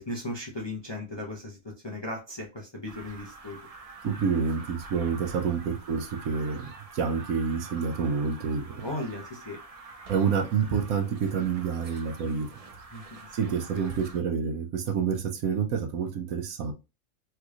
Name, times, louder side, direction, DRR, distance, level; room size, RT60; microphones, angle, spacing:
voice 1, 0.0-3.6 8.7-9.6 12.9-13.3 13.7-13.9, left 1 dB, 30° left, 0.5 m, -37 dB
sound 1, 2.9-14.2, right 3 dB, 60° right, 0.3 m, -46 dB
voice 2, 4.0-8.9 10.1-12.5 13.3-16.7, right 6 dB, 80° right, 1.1 m, -28 dB
3.4 x 3.1 x 2.4 m
omnidirectional pair, 1.5 m